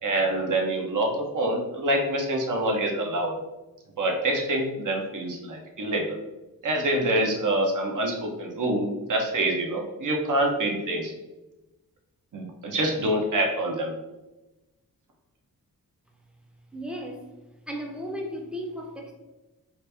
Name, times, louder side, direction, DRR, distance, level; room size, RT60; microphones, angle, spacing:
voice 1, 0.0-3.3 4.0-6.2 6.6-11.1 12.3-13.9, right 1 dB, 60° right, 2 dB, 0.8 m, -26 dB
voice 2, 16.7-17.2 17.7-19.1, equal, 5° right, 1 dB, 0.6 m, -35 dB
3.0 x 2.5 x 3.3 m, 1.0 s
cardioid pair, 65°, 36 cm